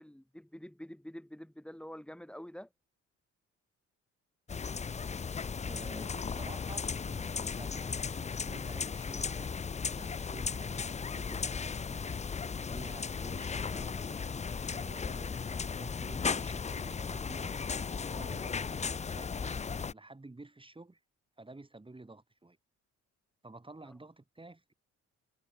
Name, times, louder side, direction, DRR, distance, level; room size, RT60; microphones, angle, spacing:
voice 1, 0.0-2.7, equal, 5° left, 5.8 m, -47 dB
sound 1, 4.5-19.9, left 5 dB, 25° left, 0.6 m, -36 dB
voice 2, 5.6-9.6 9.9-12.1 12.7-17.5 18.2-21.0 21.4-22.6 23.4-24.7, right 2 dB, 15° right, 6.2 m, -51 dB
cardioid pair, 90°, 30 cm